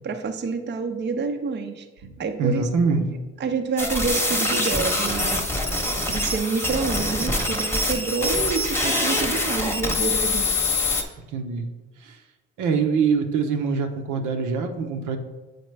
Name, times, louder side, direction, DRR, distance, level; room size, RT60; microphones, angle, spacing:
voice 1, 0.0-1.9 2.2-2.7 3.4-5.4 5.7-5.8 6.1-10.5, right 4 dB, 35° right, 6 dB, 0.5 m, -27 dB
voice 2, 2.4-3.0 11.3-11.7 12.0-12.2 12.6-15.2, right 5 dB, 85° right, 4 dB, 0.8 m, -24 dB
sound 1, 3.8-11.0, left 2 dB, 10° left, 0.9 m, -24 dB
7.9 x 4.3 x 3.2 m, 1.2 s
cardioid pair, 90°, 30 cm